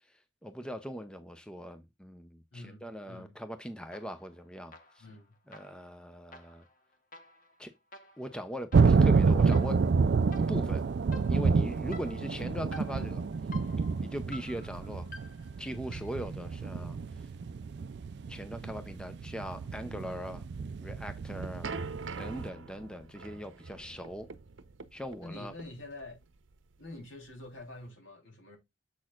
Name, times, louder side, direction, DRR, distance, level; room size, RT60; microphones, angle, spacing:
voice 1, 0.4-5.0 5.5-6.6 7.6-7.7 8.2-9.8 10.5-10.9 11.3-13.2 14.0-15.1 15.6-17.0 18.3-20.5 20.8-21.7 22.2-24.3 24.9-25.5, equal, 5° left, 0.6 m, -40 dB
voice 2, 2.5-3.3 5.0-5.3 25.2-26.2 26.8-28.6, left 2 dB, 80° left, 3.5 m, -46 dB
sound 1, 3.9-4.4 4.7-16.3, left 2 dB, 45° left, 1.1 m, -52 dB
sound 2, 8.7-22.5, right 4 dB, 60° right, 0.4 m, -28 dB
sound 3, 21.0-27.8, right 4 dB, 75° right, 0.7 m, -45 dB
7.4 x 6.1 x 2.4 m
head